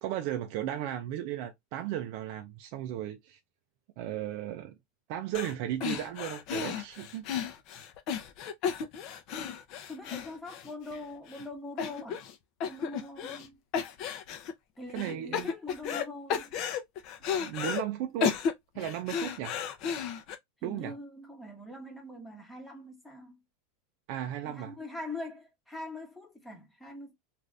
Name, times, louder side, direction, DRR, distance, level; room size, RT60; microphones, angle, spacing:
voice 1, 0.0-3.4 4.0-4.7 5.1-7.3 14.9-15.5 17.4-18.4 18.8-19.5 20.6-20.9 24.1-24.7, right 12 dB, 55° right, 0.4 m, -35 dB
sound 1, 5.3-5.5 5.8-11.0 11.3-11.4 11.8-12.3 12.6-13.5 13.7-14.5 15.0-16.0 16.3-17.8 18.2-20.3, left 7 dB, 45° left, 0.6 m, -33 dB
voice 2, 9.9-12.3 12.7-13.6 14.8-16.6 20.6-23.4 24.4-27.1, left 2 dB, 5° left, 1.0 m, -43 dB
2.6 x 2.5 x 3.3 m
supercardioid pair, 145°, 0 cm